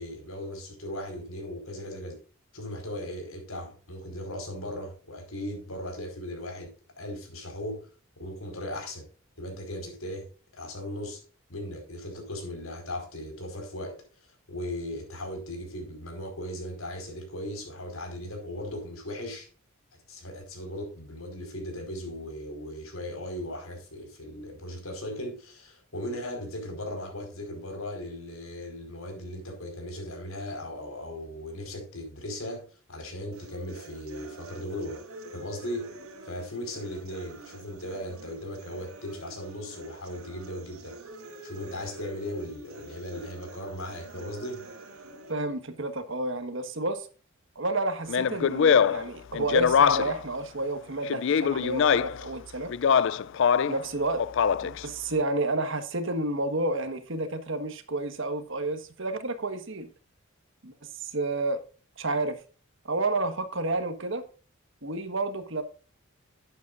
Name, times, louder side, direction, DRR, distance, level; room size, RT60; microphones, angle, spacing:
voice 1, 0.0-2.2 2.5-6.7 7.0-7.9 8.2-9.1 9.4-10.3 10.5-11.2 11.5-19.5 20.1-35.0 35.3-35.9 36.2-41.0 41.4-44.7, left 1 dB, 80° left, 4.9 m, -37 dB
sound 1, 33.3-45.3, right 2 dB, 85° right, 2.2 m, -47 dB
voice 2, 45.3-47.1 47.5-52.7 53.7-54.2 54.6-59.9 60.6-60.7 61.0-61.6 62.0-62.4 62.8-64.2 64.8-65.6, right 2 dB, 60° right, 1.5 m, -30 dB
Speech, 48.1-50.3 51.1-52.2 52.7-53.8 54.2-54.8, left 7 dB, 60° left, 0.4 m, -23 dB
11.5 x 9.4 x 2.6 m
head